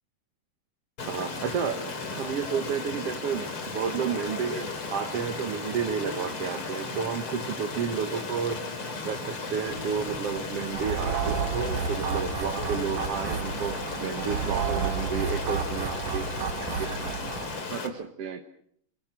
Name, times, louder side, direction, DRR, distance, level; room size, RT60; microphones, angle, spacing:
Stream, 1.0-17.9, left 4 dB, 40° left, 3.5 m, -35 dB
voice 1, 1.1-1.8 2.1-8.6 9.1-16.3 16.6-17.2 17.6-18.4, right 7 dB, 55° right, 4 dB, 2.1 m, -31 dB
sound 1, 9.7-17.6, left 4 dB, 60° left, 2.8 m, -46 dB
sound 2, 10.7-17.6, right 6 dB, 85° right, 3.1 m, -31 dB
29.0 x 22.5 x 6.2 m, 0.67 s
omnidirectional pair, 3.7 m